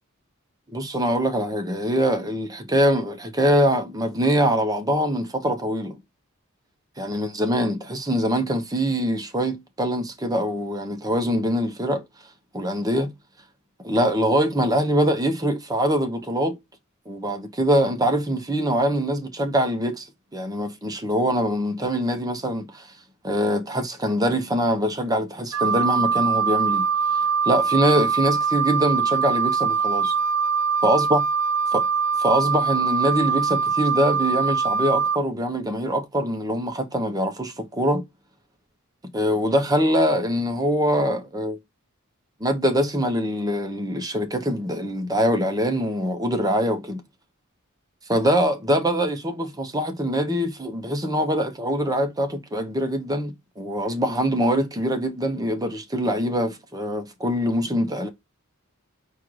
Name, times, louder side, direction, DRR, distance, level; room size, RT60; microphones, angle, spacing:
voice 1, 0.7-6.0 7.0-12.0 12.5-13.1 13.8-16.6 17.1-20.0 20.3-22.9 23.2-26.9 27.1-30.1 30.8-31.2 31.7-31.8 32.2-38.0 39.1-41.6 42.4-47.0 48.1-58.1, equal, 15° right, 0.9 m, -23 dB
Wind instrument woodwind instrument, 25.5-35.2, right 6 dB, 85° right, 0.5 m, -23 dB
4.5 x 2.5 x 4.6 m
head